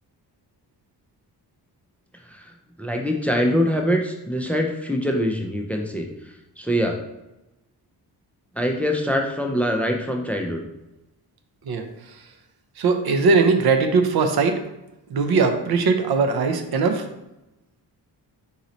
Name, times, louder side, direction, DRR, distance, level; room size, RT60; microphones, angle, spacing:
voice 1, 2.8-6.1 6.6-7.0 8.5-10.6, equal, 5° left, 2 dB, 0.4 m, -23 dB
voice 2, 12.8-14.6 15.1-17.0, right 4 dB, 70° right, 7 dB, 0.7 m, -20 dB
4.0 x 3.0 x 4.0 m, 0.94 s
wide cardioid pair, 160°, 40 cm